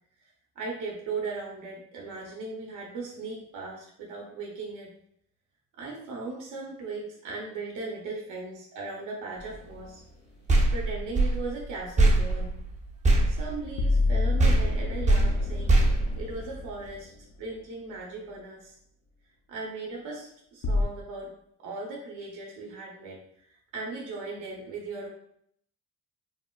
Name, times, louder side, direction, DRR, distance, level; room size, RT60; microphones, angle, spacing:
voice 1, 0.6-4.9 5.8-10.0 10.7-12.6 13.2-17.1 17.4-18.8 19.5-21.3 21.6-23.2 23.7-25.1, right 3 dB, 85° right, -2 dB, 0.8 m, -38 dB
sound 1, 9.4-9.9 13.8-17.2 20.6-20.8, left 3 dB, 60° left, 0.5 m, -28 dB
sound 2, 10.5-14.1 14.4-16.9, right 2 dB, 25° right, 0.5 m, -24 dB
3.5 x 2.2 x 2.3 m, 0.68 s
cardioid pair, 90°, 30 cm